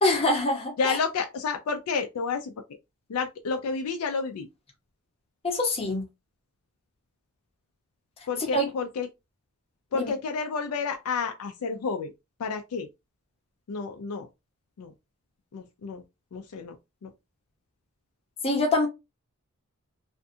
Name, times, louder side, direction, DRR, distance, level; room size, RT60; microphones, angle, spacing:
voice 1, 0.0-1.0 5.4-6.0 8.5-8.7 9.9-10.1 18.4-18.9, left 2 dB, 25° left, 0.9 m, -24 dB
voice 2, 0.8-2.5 3.1-4.5 8.3-9.1 9.9-12.1 12.4-12.9 13.7-14.3 14.8-14.9 15.5-16.0 16.3-16.7 17.0-17.1, left 5 dB, 75° left, 0.4 m, -30 dB
2.5 x 2.3 x 2.6 m
head